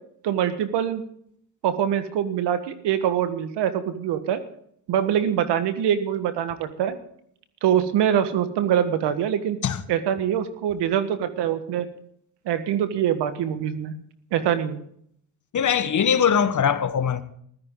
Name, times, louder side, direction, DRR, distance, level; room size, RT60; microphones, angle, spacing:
voice 1, 0.2-1.0 1.6-4.4 4.9-7.0 7.6-9.6 9.9-11.9 12.4-13.9 14.3-14.8, right 9 dB, 80° right, 1.6 m, -24 dB
voice 2, 15.5-17.2, left 7 dB, 45° left, 1.3 m, -21 dB
15.5 x 13.0 x 3.9 m
supercardioid pair, 75°, 41 cm